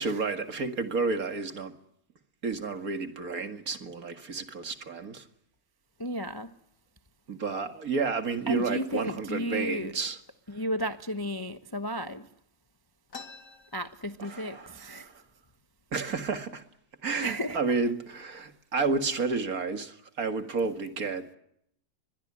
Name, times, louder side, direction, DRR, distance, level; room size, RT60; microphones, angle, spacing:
voice 1, 0.0-1.7 2.4-5.2 7.3-10.2 14.2-15.1 15.9-16.6 17.0-21.3, right 4 dB, 50° right, 2.3 m, -31 dB
voice 2, 6.0-6.5 8.5-9.9 10.5-12.2 13.7-15.0 17.2-17.6, equal, 20° left, 0.7 m, -33 dB
sound 1, 13.1-14.7 15.1-15.2 15.4-16.0 16.6-16.8 17.5-17.7 18.1-18.6, left 4 dB, 65° left, 2.8 m, -48 dB
23.5 x 22.0 x 9.8 m
omnidirectional pair, 2.0 m